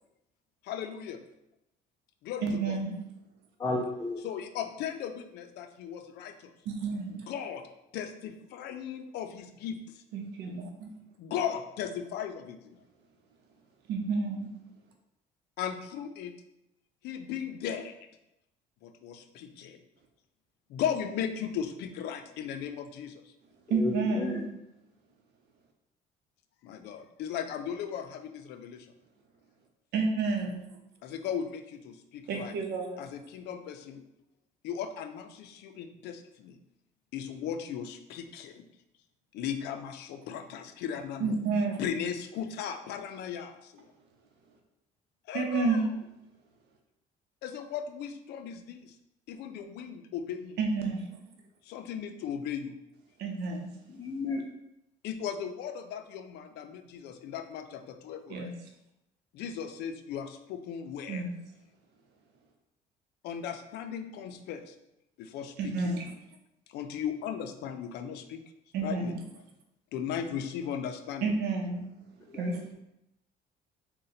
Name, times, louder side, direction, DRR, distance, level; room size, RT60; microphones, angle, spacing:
voice 1, 0.6-1.2 2.2-2.8 4.2-6.5 7.1-7.6 7.9-10.0 11.2-12.8 15.6-16.3 17.0-17.9 18.8-19.8 20.7-23.3 26.6-28.9 31.0-32.5 33.0-34.0 34.6-36.6 37.1-38.7 39.3-41.4 41.8-43.9 45.3-45.9 47.4-49.0 49.3-50.6 51.6-52.7 55.0-58.5 59.3-61.3 63.2-64.7 65.2-65.9 66.7-68.4 68.8-69.1 69.9-71.3, left 8 dB, 80° left, 7 dB, 0.4 m, -37 dB
voice 2, 2.4-3.0 6.7-7.2 10.1-10.9 13.9-14.5 23.7-24.5 29.9-30.6 32.3-33.0 41.2-41.8 45.3-45.9 50.6-51.1 53.2-53.7 58.3-58.5 61.1-61.3 65.6-66.1 68.7-69.1 71.2-71.9 72.3-72.7, right 4 dB, 80° right, 3 dB, 0.7 m, -30 dB
voice 3, 3.6-4.2 23.7-24.4 53.9-54.4 72.3-72.5, left 2 dB, 20° left, 0 dB, 0.4 m, -32 dB
3.8 x 2.2 x 4.0 m, 0.86 s
cardioid pair, 110°, 17 cm